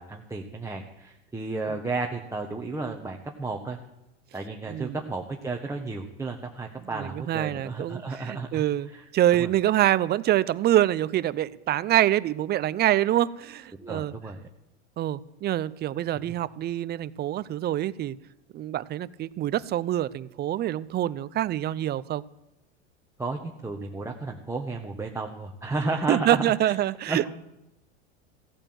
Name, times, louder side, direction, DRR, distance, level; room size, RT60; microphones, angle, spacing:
voice 1, 0.0-3.8 4.3-9.0 9.3-9.5 13.8-14.4 23.2-26.7 27.1-27.3, right 3 dB, 10° right, 0 dB, 1.4 m, -33 dB
voice 2, 6.9-14.1 15.0-18.2 18.5-22.2 26.1-27.3, right 13 dB, 30° right, 18 dB, 0.6 m, -25 dB
16.5 x 8.8 x 7.9 m, 0.90 s
hypercardioid pair, 100°, 35 cm